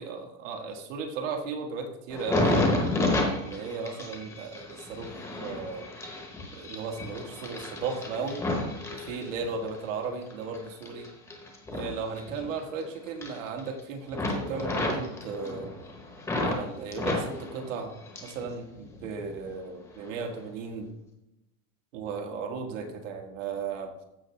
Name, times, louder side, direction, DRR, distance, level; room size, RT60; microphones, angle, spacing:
voice 1, 0.0-2.8 3.3-5.1 5.4-5.9 6.5-8.4 8.9-11.1 11.7-15.7 16.4-17.9 18.2-20.9 21.9-23.9, right 5 dB, 65° right, 3 dB, 1.8 m, -35 dB
sound 1, 2.1-9.8 10.2-12.8 13.1-13.8 14.1-16.6 16.9-18.5 18.8-19.5 20.0-20.3, left 2 dB, 5° left, 0.9 m, -31 dB
14.5 x 5.8 x 3.3 m, 0.91 s
supercardioid pair, 180°, 40 cm